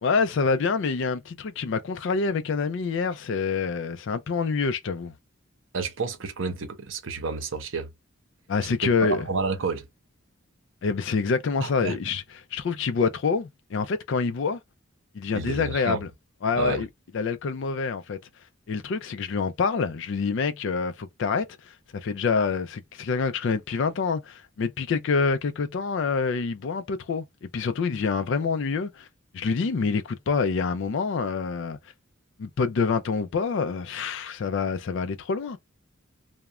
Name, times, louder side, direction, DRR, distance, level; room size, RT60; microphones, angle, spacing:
voice 1, 0.0-5.1 8.5-9.3 10.8-12.2 12.5-14.6 15.1-16.1 16.4-16.9 17.1-18.2 18.7-21.7 22.0-29.1 29.3-31.8 32.4-35.6, left 5 dB, 65° left, 0.4 m, -26 dB
voice 2, 5.7-7.9 8.8-9.9 11.6-12.2 15.3-16.0 16.6-16.8, right 4 dB, 70° right, 0.7 m, -30 dB
2.4 x 2.1 x 2.9 m
head